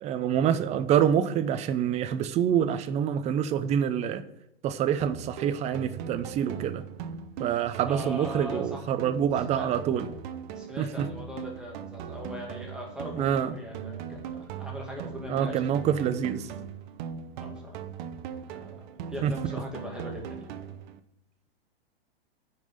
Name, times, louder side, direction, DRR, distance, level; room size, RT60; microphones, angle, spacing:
voice 1, 0.0-4.2 4.6-6.8 7.4-10.1 10.8-11.1 13.1-13.5 15.3-16.5 19.2-19.3, right 9 dB, 20° right, 12 dB, 0.6 m, -26 dB
sound 1, 5.0-21.0, right 7 dB, 50° right, 0.9 m, -40 dB
voice 2, 7.8-8.9 9.5-9.7 10.5-15.6 17.4-17.8 18.4-20.5, equal, 5° right, -2 dB, 2.1 m, -40 dB
9.1 x 5.6 x 6.7 m, 0.86 s
hypercardioid pair, 120°, 31 cm